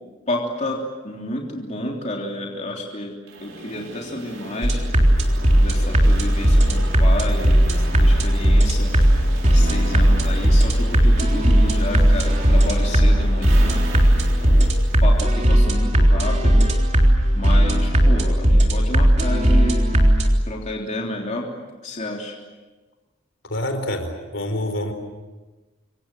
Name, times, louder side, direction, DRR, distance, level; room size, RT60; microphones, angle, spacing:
voice 1, 0.3-3.1 3.4-4.8 5.6-8.9 9.4-13.8 14.4-14.7 15.0-16.7 17.4-19.8 20.5-21.5 21.8-22.3, left 1 dB, 35° left, -1 dB, 3.4 m, -30 dB
sound 1, 3.3-16.1, right 2 dB, 75° right, 5.6 m, -37 dB
sound 2, 4.6-20.3, equal, 35° right, 3.6 m, -17 dB
voice 2, 23.5-24.9, left 1 dB, 65° left, 7 dB, 4.6 m, -26 dB
28.0 x 24.0 x 7.9 m, 1.2 s
head